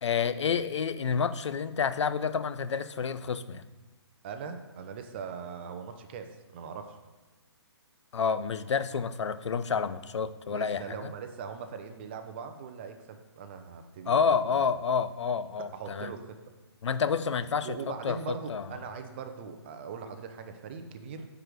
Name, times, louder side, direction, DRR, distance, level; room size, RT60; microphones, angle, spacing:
voice 1, 0.0-3.6 8.1-11.1 14.1-16.1 16.8-18.6, left 6 dB, 90° left, 14 dB, 0.4 m, -29 dB
voice 2, 4.2-7.0 10.5-14.6 15.7-16.4 17.6-21.3, right 6 dB, 25° right, 7 dB, 0.5 m, -41 dB
6.0 x 4.8 x 5.1 m, 1.2 s
hypercardioid pair, 160°, 15 cm